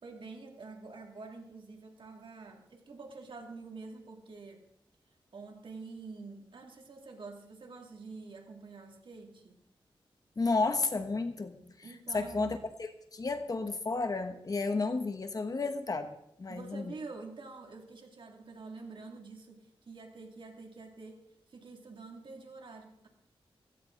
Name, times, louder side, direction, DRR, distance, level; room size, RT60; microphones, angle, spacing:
voice 1, 0.0-4.6 5.3-9.6 11.8-12.5 16.5-21.2 21.5-23.1, right 3 dB, 60° right, 2 dB, 2.5 m, -47 dB
voice 2, 10.4-11.9 12.1-16.9, left 3 dB, 40° left, 7 dB, 1.2 m, -32 dB
16.0 x 15.5 x 4.0 m, 0.76 s
wide cardioid pair, 110°, 10 cm